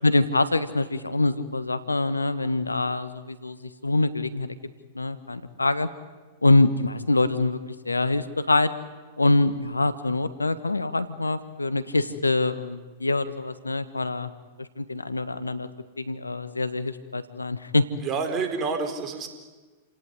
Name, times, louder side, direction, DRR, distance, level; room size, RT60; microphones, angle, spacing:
voice 1, 0.0-4.5 4.9-5.9 6.4-8.7 9.2-14.3 14.6-15.7 16.0-17.9, left 2 dB, 85° left, 13 dB, 1.5 m, -24 dB
voice 2, 18.0-19.3, right 4 dB, 30° right, 6 dB, 4.9 m, -28 dB
30.0 x 18.0 x 9.8 m, 1.3 s
figure-of-eight pair, 100°, 0 cm